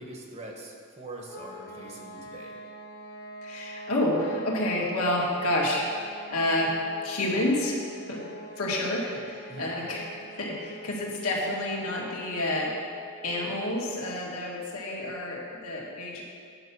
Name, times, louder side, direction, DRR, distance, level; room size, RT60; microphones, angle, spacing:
voice 1, 0.0-2.6 9.5-9.9, right 2 dB, 30° right, 0 dB, 1.1 m, -43 dB
sound 1, 1.3-14.1, equal, 45° left, 1.0 m, -45 dB
voice 2, 3.4-6.8 7.0-7.8 8.1-8.2 8.6-10.1 10.4-12.7 13.2-16.2, left 1 dB, 80° left, -3 dB, 1.9 m, -29 dB
9.8 x 5.8 x 6.1 m, 2.3 s
head